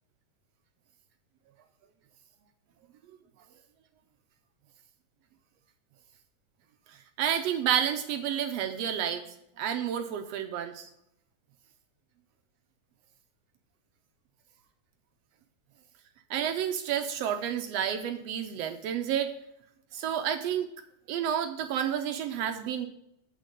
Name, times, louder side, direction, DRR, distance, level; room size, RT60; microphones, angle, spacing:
voice 1, 7.2-9.3 9.6-10.9 16.3-19.3 19.9-20.7 21.1-22.9, right 9 dB, 80° right, 6 dB, 1.5 m, -30 dB
8.4 x 5.2 x 6.4 m, 0.76 s
omnidirectional pair, 3.3 m